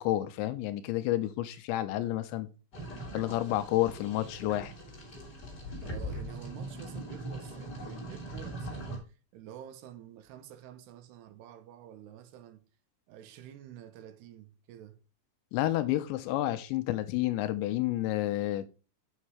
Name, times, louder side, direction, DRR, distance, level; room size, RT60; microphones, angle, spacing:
voice 1, 0.0-2.5 3.1-4.7 15.5-18.7, left 15 dB, 80° left, 2.9 m, -30 dB
sound 1, 2.7-9.0, right 1 dB, 25° left, 2.8 m, -41 dB
voice 2, 5.8-12.6 13.1-15.0, right 10 dB, 75° right, 2.7 m, -49 dB
7.8 x 6.5 x 4.7 m
omnidirectional pair, 5.4 m